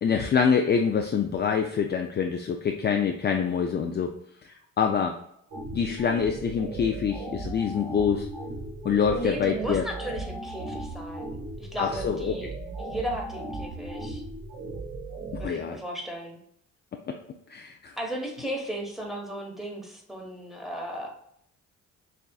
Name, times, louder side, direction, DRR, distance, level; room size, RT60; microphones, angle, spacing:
voice 1, 0.0-4.1 4.4-5.2 5.7-8.3 8.8-9.8 11.8-12.3 15.3-15.8 17.5-17.9, left 6 dB, 35° left, 4 dB, 0.4 m, -25 dB
sound 1, 5.5-15.5, right 2 dB, 50° right, 1.6 m, -37 dB
voice 2, 9.1-12.5 12.8-14.2 15.4-16.4 18.0-21.1, equal, ahead, -1 dB, 1.3 m, -35 dB
6.7 x 2.4 x 2.3 m, 0.72 s
cardioid pair, 90°, 30 cm